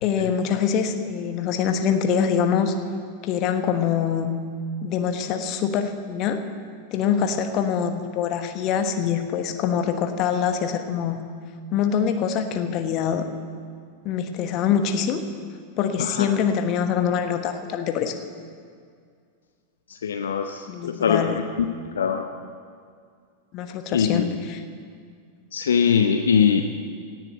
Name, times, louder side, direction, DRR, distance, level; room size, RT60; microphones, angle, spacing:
voice 1, 0.0-2.7 3.2-4.3 4.8-6.4 6.9-11.2 11.7-13.2 14.0-15.2 15.8-18.1 20.7-21.4 23.5-24.6, left 7 dB, 40° left, 7 dB, 1.3 m, -24 dB
voice 2, 19.9-21.4 22.0-22.2 23.9-24.2 25.5-26.6, left 7 dB, 65° left, 6 dB, 0.7 m, -22 dB
17.5 x 7.4 x 9.0 m, 2.2 s
figure-of-eight pair, 90°, 0 cm